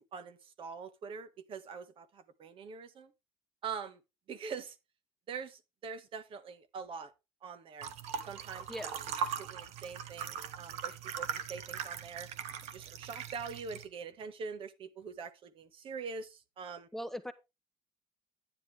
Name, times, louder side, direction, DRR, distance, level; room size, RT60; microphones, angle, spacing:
voice 1, 0.1-3.1 3.6-4.0 4.3-4.8 5.3-7.1 7.4-7.9 8.2-8.6 9.2-12.3 12.7-16.9, right 5 dB, 50° right, 1.5 m, -44 dB
sound 1, 7.8-13.9, right 7 dB, 85° right, 1.3 m, -40 dB
voice 2, 8.7-9.1 16.9-17.3, equal, 5° left, 0.9 m, -40 dB
10.0 x 9.8 x 3.4 m
cardioid pair, 115°, 11 cm